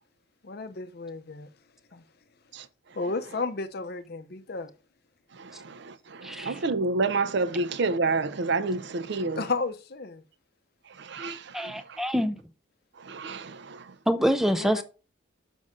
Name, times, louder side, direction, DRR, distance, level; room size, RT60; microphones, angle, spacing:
voice 1, 0.4-1.5 1.9-2.0 2.9-4.7 9.4-10.2 14.5-14.8, left 3 dB, 50° left, 0.6 m, -33 dB
voice 2, 5.4-9.4 11.0-11.7 13.1-13.8, right 3 dB, 55° right, 0.5 m, -29 dB
voice 3, 6.2-6.6 11.5-12.4 14.1-14.8, equal, ahead, 0.4 m, -25 dB
6.5 x 5.3 x 3.6 m
head